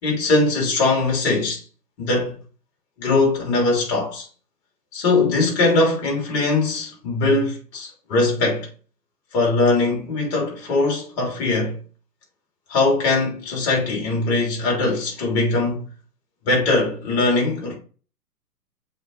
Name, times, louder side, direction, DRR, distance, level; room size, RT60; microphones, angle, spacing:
voice 1, 0.0-1.6 2.0-2.4 3.0-4.3 4.9-8.7 9.3-11.8 12.7-15.9 16.4-17.8, left 3 dB, 40° left, 3.3 m, -21 dB
6.9 x 4.0 x 3.5 m
figure-of-eight pair, 125°, 50 cm